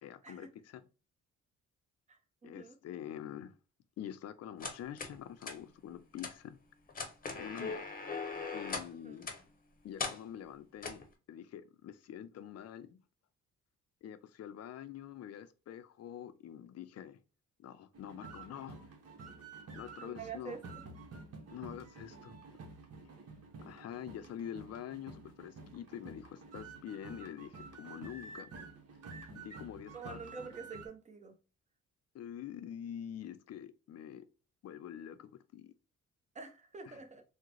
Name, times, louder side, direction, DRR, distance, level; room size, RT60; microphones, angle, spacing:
voice 1, 0.0-0.8 2.4-3.5 4.0-6.6 7.3-7.9 8.5-9.3 9.8-11.0 11.3-13.0 14.0-17.2 17.6-18.8 19.7-20.6 21.5-22.4 23.6-28.5 29.3-30.2 32.1-34.3 34.6-35.7 36.9-37.0, left 10 dB, 55° left, 0.5 m, -46 dB
voice 2, 2.1-2.8 9.0-9.3 20.0-20.6 29.9-31.4 36.3-37.2, right 5 dB, 25° right, 0.8 m, -47 dB
sound 1, 4.6-5.1 5.4-5.6 6.2-6.3 6.9-8.9 9.2-9.4 10.0-10.2 10.8-11.0, left 4 dB, 30° left, 0.8 m, -39 dB
sound 2, 17.9-30.9, right 3 dB, 55° right, 1.0 m, -50 dB
3.7 x 2.1 x 3.0 m
cardioid pair, 90°, 30 cm